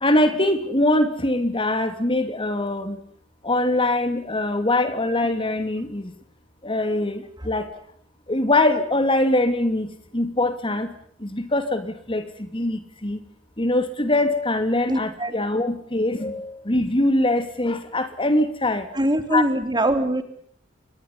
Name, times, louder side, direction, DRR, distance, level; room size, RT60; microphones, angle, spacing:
voice 1, 0.0-3.0 3.4-6.1 6.6-7.7 8.3-10.9 11.2-13.2 13.6-18.9 19.3-19.4, left 1 dB, 25° left, 9 dB, 2.7 m, -23 dB
voice 2, 14.9-15.3 18.9-20.2, right 1 dB, 20° right, 9 dB, 3.5 m, -22 dB
30.0 x 24.5 x 5.5 m, 0.63 s
head